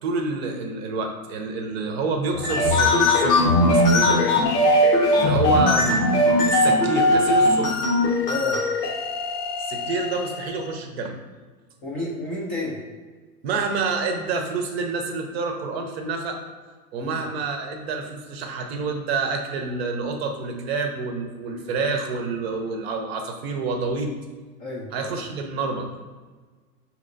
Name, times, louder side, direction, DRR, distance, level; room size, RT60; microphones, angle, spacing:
voice 1, 0.0-4.2 5.1-6.0 6.5-7.8 9.7-11.1 13.4-16.4 16.9-24.1 24.9-25.9, right 4 dB, 40° right, 4 dB, 0.6 m, -28 dB
sound 1, 2.3-10.6, left 1 dB, 80° left, 1.0 m, -20 dB
voice 2, 8.3-8.6 11.8-12.8 17.0-17.2 21.5-21.7 24.6-24.9, left 2 dB, 20° left, -5 dB, 0.4 m, -30 dB
5.6 x 2.9 x 2.5 m, 1.4 s
hypercardioid pair, 120°, 47 cm